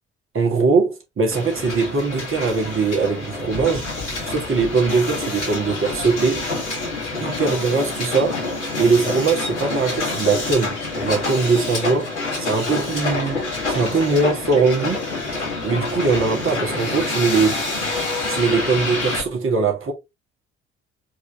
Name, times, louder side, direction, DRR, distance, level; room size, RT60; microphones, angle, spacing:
voice 1, 0.3-3.9 4.2-6.5 7.2-8.4 8.8-12.1 12.4-15.1 15.6-17.6 18.3-19.9, right 4 dB, 35° right, 1.9 m, -21 dB
Hiss, 1.3-19.2, left 3 dB, 90° left, 1.4 m, -27 dB
4.7 x 3.0 x 3.3 m
figure-of-eight pair, 45°, 34 cm